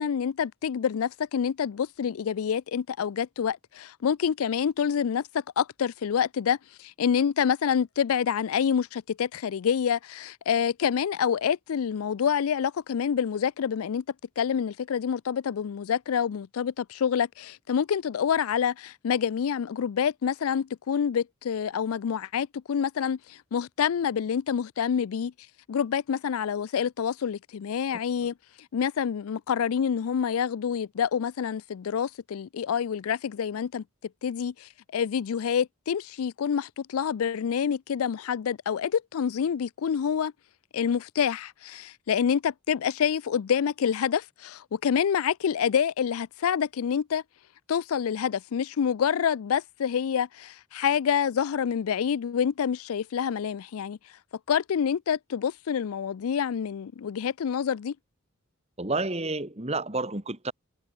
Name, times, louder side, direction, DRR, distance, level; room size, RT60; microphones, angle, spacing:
voice 1, 0.0-14.0 14.4-25.3 25.7-28.3 28.7-33.8 34.2-40.3 40.7-47.2 47.7-54.0 54.5-57.9, left 7 dB, 85° left, 0.4 m, -27 dB
voice 2, 27.9-28.3 58.8-60.5, right 2 dB, 30° right, 1.9 m, -31 dB
head